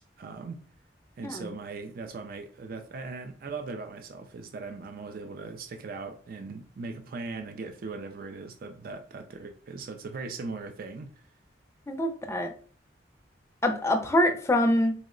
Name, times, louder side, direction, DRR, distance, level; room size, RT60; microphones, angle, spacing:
voice 1, 0.2-0.6 1.2-11.1, right 4 dB, 50° right, 0.4 m, -39 dB
voice 2, 11.9-12.5 13.6-14.9, left 1 dB, 15° left, 0.4 m, -25 dB
3.7 x 2.1 x 3.6 m
head